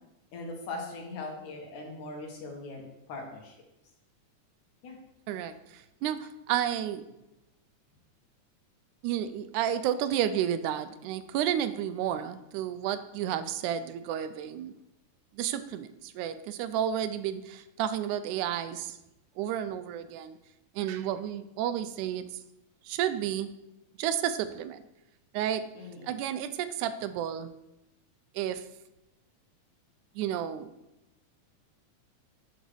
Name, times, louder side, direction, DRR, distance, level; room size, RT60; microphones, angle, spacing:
voice 1, 0.3-3.5 4.8-5.0 25.8-26.1, left 3 dB, 75° left, 1 dB, 3.1 m, -40 dB
voice 2, 5.3-7.1 9.0-14.8 15.4-19.0 19.4-20.4 20.8-22.3 22.9-23.5 24.0-24.8 25.3-25.7 26.0-27.5 28.4-28.6 30.2-30.7, right 10 dB, 80° right, 12 dB, 2.0 m, -31 dB
9.3 x 5.1 x 6.2 m, 0.91 s
omnidirectional pair, 3.6 m